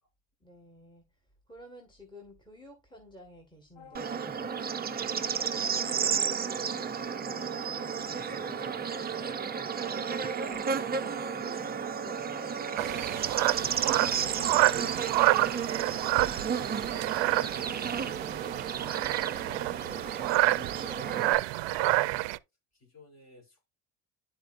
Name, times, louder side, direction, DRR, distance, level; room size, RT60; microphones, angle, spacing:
voice 1, 0.4-1.1 1.5-12.9, equal, 10° left, 1.8 m, -51 dB
sound 1, 3.8-17.4 17.8-17.9, left 8 dB, 65° left, 0.9 m, -51 dB
Bird / Insect, 3.9-21.3, right 7 dB, 20° right, 0.6 m, -33 dB
sound 2, 12.8-22.4, right 18 dB, 80° right, 0.6 m, -28 dB
voice 2, 13.6-14.0 14.2-22.4 22.7-23.7, left 1 dB, 40° left, 3.7 m, -55 dB
12.5 x 4.4 x 2.5 m
cardioid pair, 125°, 43 cm